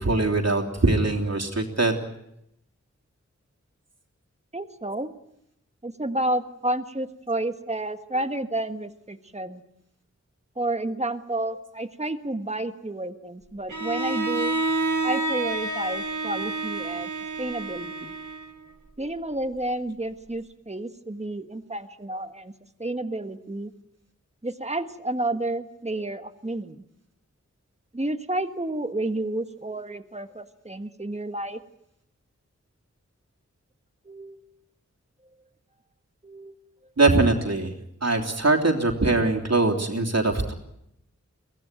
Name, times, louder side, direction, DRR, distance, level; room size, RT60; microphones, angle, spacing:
voice 1, 0.0-2.0 37.0-37.7 38.0-40.5, right 2 dB, 60° right, 2 dB, 3.2 m, -22 dB
voice 2, 4.5-5.1 5.8-9.6 10.6-14.5 15.0-17.1 17.4-18.1 19.0-22.5 22.8-23.7 24.4-26.8 27.9-31.6 34.0-34.4 36.2-36.6, right 1 dB, 25° right, 8 dB, 1.6 m, -30 dB
Bowed string instrument, 13.7-18.7, right 2 dB, 85° right, 2.8 m, -29 dB
23.5 x 17.0 x 9.2 m, 0.80 s
wide cardioid pair, 60°, 29 cm